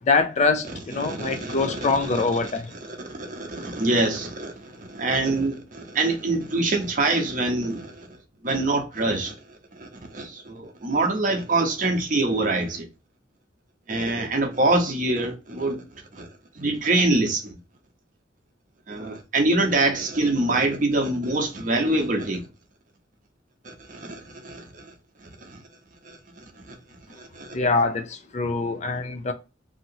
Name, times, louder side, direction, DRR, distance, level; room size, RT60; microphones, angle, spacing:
voice 1, 0.0-2.7 27.5-29.3, left 3 dB, 40° left, 0.4 m, -24 dB
voice 2, 1.0-1.8 2.1-2.2 2.9-8.1 8.4-9.3 9.8-12.9 13.9-15.8 16.1-16.3 16.6-17.6 18.9-22.4 23.6-24.9 25.4-25.6 26.0-26.2 26.7-26.8 27.1-27.6, right 2 dB, 45° right, 0.8 m, -25 dB
2.8 x 2.7 x 2.7 m
head